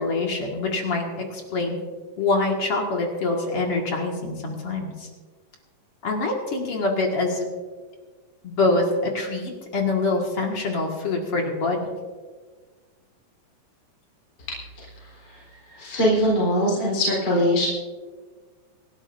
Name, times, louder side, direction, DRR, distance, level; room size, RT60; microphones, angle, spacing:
voice 1, 0.0-1.8 2.2-5.1 6.0-7.5 8.4-11.9, left 3 dB, 50° left, 0 dB, 2.5 m, -25 dB
voice 2, 15.0-17.7, equal, 30° left, -4 dB, 4.3 m, -23 dB
26.5 x 12.5 x 2.6 m, 1.4 s
omnidirectional pair, 3.8 m